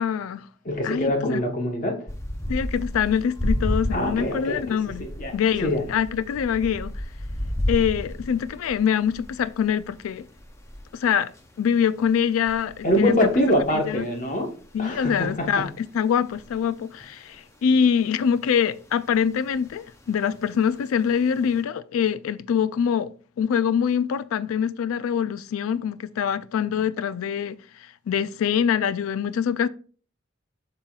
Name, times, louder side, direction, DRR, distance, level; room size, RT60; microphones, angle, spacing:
voice 1, 0.0-0.5 0.8-1.4 2.5-5.1 5.3-6.9 7.7-10.3 10.9-11.3 11.6-13.1 13.9-14.0 14.7-23.1 23.4-29.7, left 7 dB, 85° left, 0.3 m, -24 dB
voice 2, 0.6-2.0 3.9-4.6 5.0-5.8 12.8-14.5 14.8-15.7, left 1 dB, 40° left, 1.2 m, -24 dB
sound 1, 2.1-17.4 17.9-18.8 19.2-20.5 20.7-21.5, equal, 15° left, 0.6 m, -32 dB
7.4 x 5.7 x 2.3 m
head